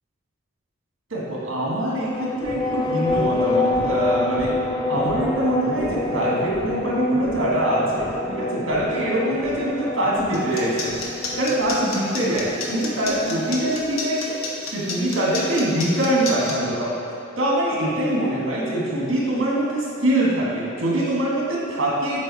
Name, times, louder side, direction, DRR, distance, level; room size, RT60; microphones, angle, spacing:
voice 1, 1.1-4.5 4.9-11.0 11.4-14.4 14.7-16.9 17.4-22.2, right 1 dB, 70° right, -5 dB, 1.7 m, -23 dB
sound 1, 2.0-13.9, left 2 dB, 20° left, 0.4 m, -27 dB
sound 2, 10.3-16.5, left 4 dB, 80° left, 1.0 m, -30 dB
7.2 x 5.0 x 4.2 m, 2.5 s
head